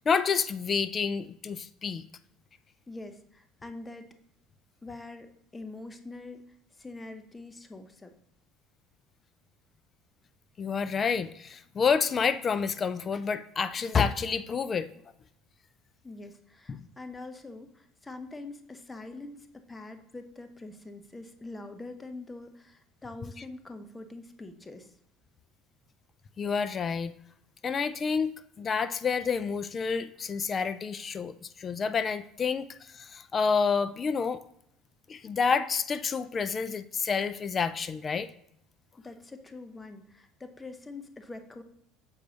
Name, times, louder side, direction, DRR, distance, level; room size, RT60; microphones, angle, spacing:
voice 1, 0.1-2.0 10.6-14.9 16.7-16.8 26.4-27.1 27.6-34.4 35.1-38.3, left 5 dB, 35° left, 13 dB, 0.4 m, -29 dB
voice 2, 2.9-4.1 4.8-6.4 6.8-8.1 16.0-24.9 39.0-41.6, left 2 dB, 20° left, 8 dB, 0.8 m, -44 dB
7.1 x 4.6 x 4.0 m, 0.73 s
hypercardioid pair, 75°, 0 cm